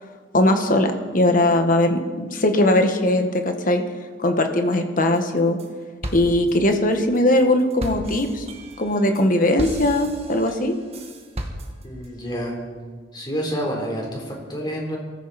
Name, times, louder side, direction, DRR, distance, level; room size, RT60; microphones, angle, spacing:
voice 1, 0.3-3.8 4.2-5.6 6.1-8.4 8.8-10.8, left 1 dB, 45° left, 6 dB, 1.5 m, -19 dB
sound 1, 5.1-5.7 6.0-12.1, right 1 dB, 35° right, 1.8 m, -35 dB
voice 2, 11.8-12.5 13.1-15.0, equal, 25° left, -1 dB, 3.8 m, -28 dB
23.0 x 14.5 x 4.3 m, 1.5 s
head